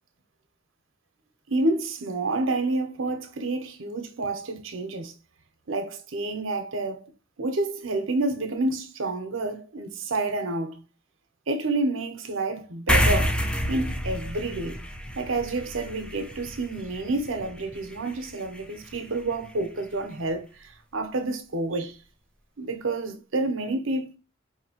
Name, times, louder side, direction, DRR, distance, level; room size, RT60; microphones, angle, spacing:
voice 1, 1.5-5.1 5.7-7.0 7.4-10.8 11.5-13.4 13.7-14.8 15.2-22.0 22.6-24.2, right 2 dB, 80° right, 0.9 m, -29 dB
sound 1, 12.9-19.7, equal, 5° left, 0.4 m, -29 dB
4.8 x 2.9 x 2.8 m
head